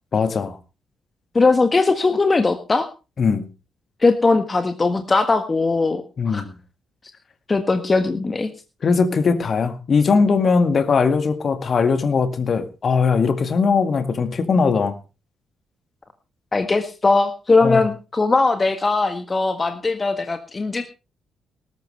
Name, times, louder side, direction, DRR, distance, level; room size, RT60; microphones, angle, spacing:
voice 1, 0.1-0.6 3.2-3.5 6.2-6.5 8.8-15.0 17.6-17.9, left 5 dB, 50° left, 9 dB, 2.0 m, -19 dB
voice 2, 1.3-2.9 4.0-6.4 7.5-8.5 16.5-20.8, left 3 dB, 30° left, 8 dB, 1.6 m, -19 dB
19.0 x 12.0 x 3.3 m, 0.32 s
hypercardioid pair, 40°, 0 cm